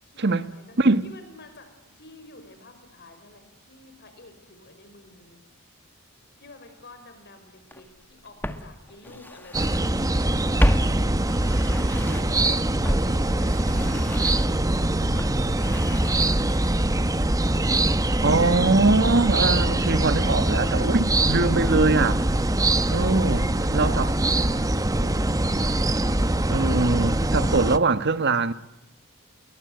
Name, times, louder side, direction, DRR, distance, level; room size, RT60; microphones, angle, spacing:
voice 1, 0.0-0.8 1.0-5.4 6.4-11.1 12.0-12.7 12.9-14.6 15.0-17.1 23.3-26.3, left 2 dB, 50° left, 5.1 m, -50 dB
Walk footsteps, 7.7-7.8 8.4-9.9 10.2-12.4 12.8-16.9 17.1-17.2, equal, 10° left, 1.7 m, -29 dB
sound 1, 9.5-27.8, right 1 dB, 15° right, 1.0 m, -23 dB
voice 2, 18.2-22.2 22.9-24.1 25.0-25.1 26.5-28.5, right 3 dB, 55° right, 1.4 m, -22 dB
29.5 x 22.5 x 7.9 m
head